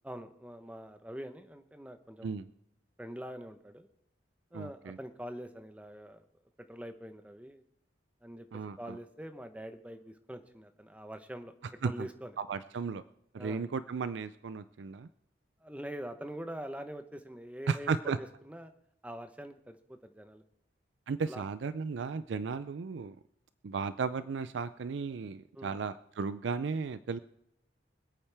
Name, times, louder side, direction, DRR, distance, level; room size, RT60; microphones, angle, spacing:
voice 1, 0.0-2.4 3.0-3.9 4.5-6.2 6.7-7.6 8.2-11.5 11.8-12.3 13.4-13.6 15.6-18.7 19.0-20.4 21.3-21.4 25.5-25.8, equal, 5° right, 8 dB, 0.8 m, -44 dB
voice 2, 4.5-5.0 8.5-9.0 11.8-12.1 12.4-13.0 13.3-15.1 17.7-18.2 21.1-23.2 23.6-27.2, right 5 dB, 80° right, 14 dB, 0.4 m, -35 dB
25.5 x 8.7 x 3.4 m, 0.75 s
head